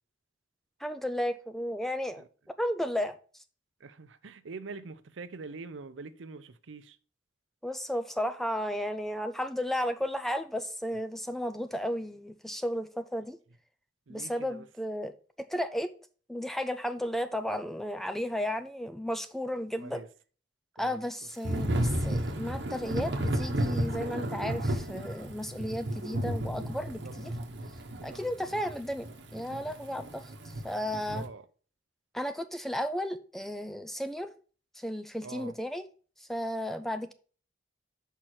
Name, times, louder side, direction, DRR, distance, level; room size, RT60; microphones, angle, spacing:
voice 1, 0.8-2.2 2.6-3.2 7.6-13.4 14.1-15.9 16.3-20.0 20.8-27.3 28.0-29.1 29.3-31.2 32.1-34.3 34.8-35.9 36.2-37.1, equal, ahead, 0.4 m, -34 dB
voice 2, 3.8-7.0 14.1-14.7 19.8-20.1 20.8-21.0 26.9-27.2 28.0-28.3 31.1-31.5 35.2-35.5, right 4 dB, 90° right, 0.6 m, -44 dB
Thunder / Rain, 21.4-31.3, right 1 dB, 65° right, 1.0 m, -33 dB
5.6 x 4.4 x 6.3 m
head